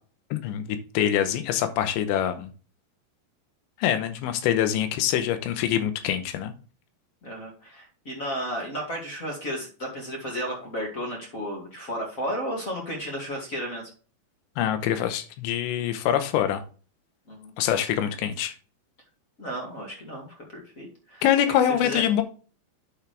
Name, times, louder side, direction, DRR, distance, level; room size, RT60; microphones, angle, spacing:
voice 1, 0.3-2.5 3.8-6.5 14.6-16.6 17.6-18.5 21.2-22.2, left 10 dB, 85° left, 9 dB, 3.2 m, -25 dB
voice 2, 7.2-13.9 17.3-17.5 19.4-22.0, equal, 30° left, -1 dB, 1.8 m, -33 dB
9.7 x 5.9 x 3.4 m, 0.38 s
omnidirectional pair, 5.1 m